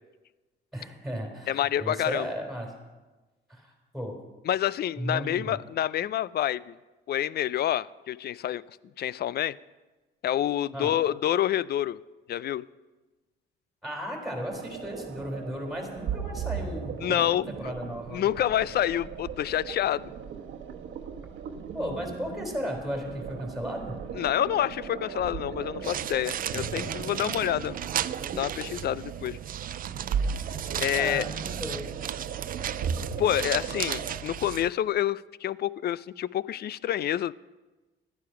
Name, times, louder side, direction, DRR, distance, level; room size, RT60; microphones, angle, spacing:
voice 1, 0.7-2.7 3.5-4.1 5.0-5.6 10.7-10.9 13.8-16.9 17.5-18.2 21.7-23.9 30.9-31.9, equal, ahead, 1 dB, 3.7 m, -35 dB
voice 2, 1.5-2.3 4.5-6.7 7.1-8.6 9.0-9.6 10.2-12.0 12.3-12.7 17.0-17.5 18.1-20.1 24.1-27.8 28.3-29.4 30.8-31.2 33.2-37.3, left 11 dB, 55° left, 20 dB, 0.4 m, -28 dB
sound 1, 14.5-34.2, right 6 dB, 75° right, 1.1 m, -37 dB
sound 2, 25.8-34.7, right 10 dB, 45° right, 0.4 m, -35 dB
12.5 x 9.7 x 5.8 m, 1.2 s
cardioid pair, 90°, 20 cm